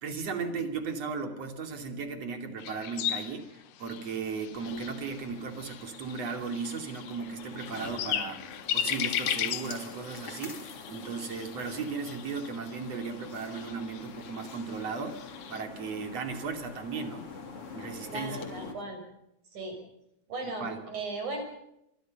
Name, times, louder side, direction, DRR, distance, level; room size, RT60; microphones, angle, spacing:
voice 1, 0.0-17.3 17.7-18.5 20.4-20.8, right 5 dB, 55° right, 6 dB, 3.8 m, -36 dB
sound 1, 2.6-15.6, left 11 dB, 90° left, 2.7 m, -37 dB
sound 2, 4.5-18.7, left 4 dB, 45° left, 4.1 m, -46 dB
voice 2, 18.1-19.0 19.5-19.8 20.3-21.4, right 2 dB, 70° right, 4 dB, 7.5 m, -37 dB
26.5 x 23.5 x 5.4 m, 0.82 s
omnidirectional pair, 3.6 m